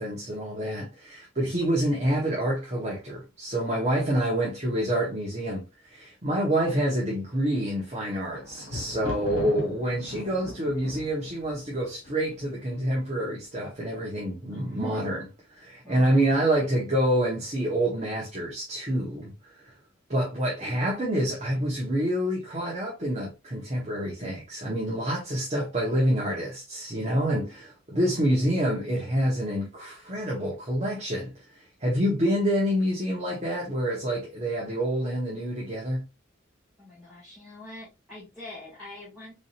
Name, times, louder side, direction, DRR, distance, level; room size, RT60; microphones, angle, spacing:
voice 1, 0.0-15.2 15.5-19.7 20.1-31.3 31.8-36.0, right 1 dB, 35° right, 1.0 m, -27 dB
Thunder, 7.7-12.8 13.5-14.1 14.3-14.4, left 1 dB, 85° left, 1.7 m, -39 dB
voice 2, 14.5-15.0 15.8-16.3 36.8-39.3, left 1 dB, ahead, 1.8 m, -44 dB
4.1 x 3.5 x 2.4 m
head